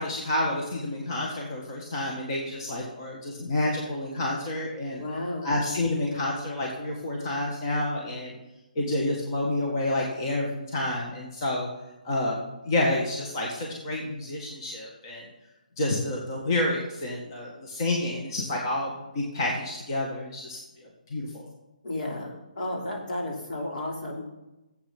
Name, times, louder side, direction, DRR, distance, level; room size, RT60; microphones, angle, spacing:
voice 1, 0.0-5.0 5.4-8.3 8.7-11.7 12.0-12.4 12.6-15.2 15.8-21.5, left 1 dB, 30° left, -1 dB, 1.6 m, -29 dB
voice 2, 5.0-5.5 21.8-24.2, left 1 dB, 65° left, -1 dB, 3.2 m, -33 dB
9.9 x 8.0 x 5.9 m, 0.97 s
hypercardioid pair, 170°, 5 cm